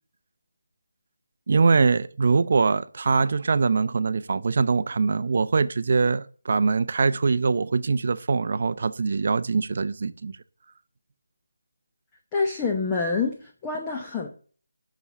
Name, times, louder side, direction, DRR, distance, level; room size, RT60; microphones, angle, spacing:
voice 1, 1.5-10.3, right 4 dB, 45° right, 0.7 m, -23 dB
voice 2, 12.3-14.3, left 4 dB, 10° left, 0.9 m, -27 dB
9.9 x 6.2 x 6.7 m
figure-of-eight pair, 170°, 0 cm